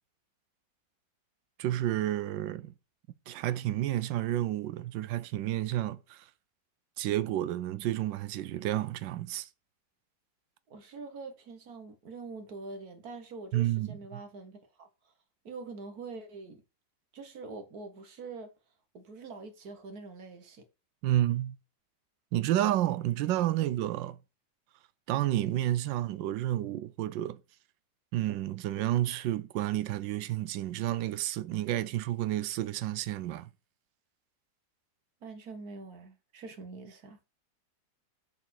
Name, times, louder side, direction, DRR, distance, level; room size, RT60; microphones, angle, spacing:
voice 1, 1.6-2.7 3.3-6.3 7.0-9.5 13.5-14.2 21.0-21.6 22.3-24.2 25.1-27.4 28.1-33.5, right 13 dB, 90° right, 1.3 m, -30 dB
voice 2, 10.7-14.9 15.5-16.6 17.1-18.5 18.9-20.6 35.2-37.2, right 3 dB, 60° right, 1.7 m, -44 dB
7.2 x 4.2 x 6.0 m
omnidirectional pair, 1.9 m